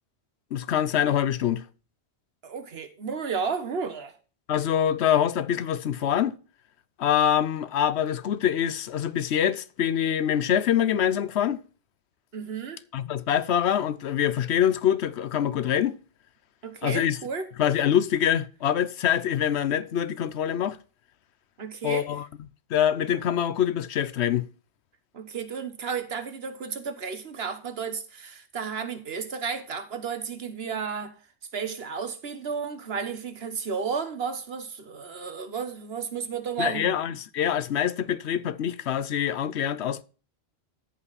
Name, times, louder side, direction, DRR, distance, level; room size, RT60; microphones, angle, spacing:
voice 1, 0.5-1.6 4.5-6.4 7.0-11.6 12.9-16.0 16.8-17.2 17.6-20.8 21.8-22.2 22.7-24.5 36.6-40.0, left 9 dB, 80° left, 1.0 m, -25 dB
voice 2, 2.4-4.1 12.3-12.8 16.6-17.5 21.6-22.1 25.1-31.1 31.5-37.0, right 5 dB, 65° right, 1.4 m, -33 dB
13.5 x 5.6 x 4.1 m
omnidirectional pair, 1.1 m